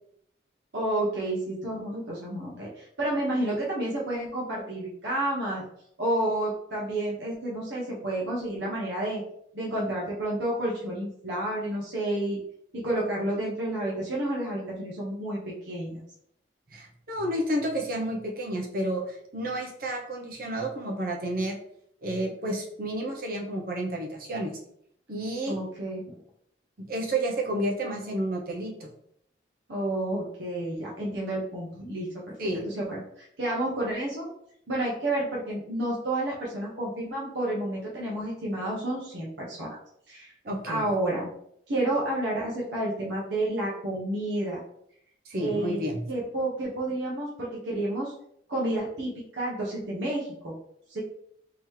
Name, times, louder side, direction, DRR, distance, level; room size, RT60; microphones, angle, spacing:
voice 1, 0.7-5.7 6.0-9.2 9.5-12.4 12.7-16.0 25.5-26.0 29.7-32.3 32.7-34.3 34.7-39.8 40.1-40.3 40.6-41.3 41.7-44.6 45.4-45.8 46.1-48.1 48.5-50.6 50.9-51.0, right 1 dB, 80° right, -5 dB, 1.0 m, -30 dB
voice 2, 16.7-21.6 22.0-24.6 25.1-25.6 26.8-28.9 32.4-32.7 40.4-40.9 45.3-46.0, right 1 dB, 50° right, 2 dB, 0.7 m, -31 dB
3.7 x 3.0 x 3.1 m, 0.70 s
head